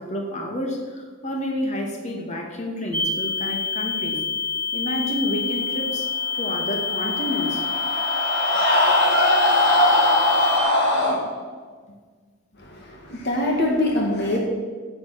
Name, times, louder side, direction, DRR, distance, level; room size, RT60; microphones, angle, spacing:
voice 1, 0.0-4.2 4.7-7.7, left 1 dB, 35° left, 0 dB, 2.4 m, -29 dB
sound 1, 2.9-10.6, left 5 dB, 10° left, 1.1 m, -27 dB
Screaming, 6.7-11.2, left 1 dB, 75° left, 4.2 m, -20 dB
voice 2, 12.7-14.4, left 1 dB, 60° left, 0 dB, 2.0 m, -23 dB
16.0 x 8.0 x 6.0 m, 1.5 s
head